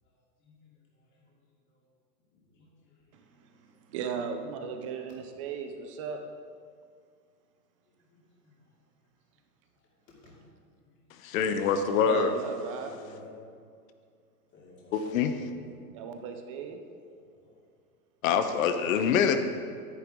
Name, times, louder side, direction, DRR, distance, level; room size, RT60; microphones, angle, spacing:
voice 1, 0.4-0.7 2.5-2.7 8.1-8.5 10.1-10.4 12.8-13.3 14.5-15.8 17.1-17.6, left 3 dB, 25° left, -5 dB, 2.6 m, -52 dB
voice 2, 3.1-6.2 12.0-13.0 15.9-16.8, right 6 dB, 25° right, 6 dB, 0.4 m, -37 dB
voice 3, 11.2-12.3 14.9-15.3 18.2-19.4, left 7 dB, 55° left, 9 dB, 1.0 m, -25 dB
9.9 x 9.5 x 3.7 m, 2.2 s
hypercardioid pair, 145°, 47 cm